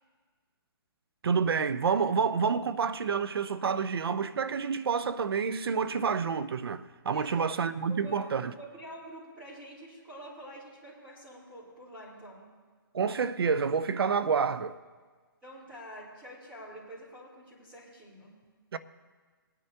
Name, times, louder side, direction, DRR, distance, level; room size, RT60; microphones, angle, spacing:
voice 1, 1.2-8.5 12.9-14.8 18.7-18.8, right 6 dB, 80° right, 0.7 m, -28 dB
voice 2, 7.1-7.4 7.9-12.5 15.4-18.3, equal, 10° right, 3.9 m, -47 dB
20.5 x 9.9 x 2.9 m
hypercardioid pair, 160°, 12 cm